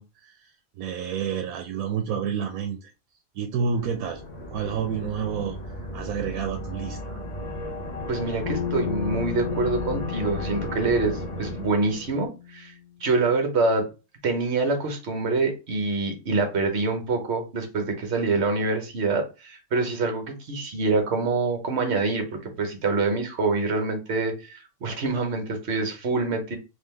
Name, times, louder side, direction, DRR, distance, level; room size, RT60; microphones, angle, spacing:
voice 1, 0.0-2.9 3.3-4.2 4.5-7.2, right 7 dB, 90° right, 1.0 m, -30 dB
sound 1, 3.7-12.3, left 1 dB, 40° left, 0.8 m, -35 dB
voice 2, 8.1-12.7 13.0-13.9 14.2-26.6, right 3 dB, 55° right, 1.2 m, -26 dB
Bass guitar, 8.4-12.7, left 9 dB, 65° left, 1.4 m, -33 dB
3.7 x 3.0 x 3.3 m
omnidirectional pair, 1.4 m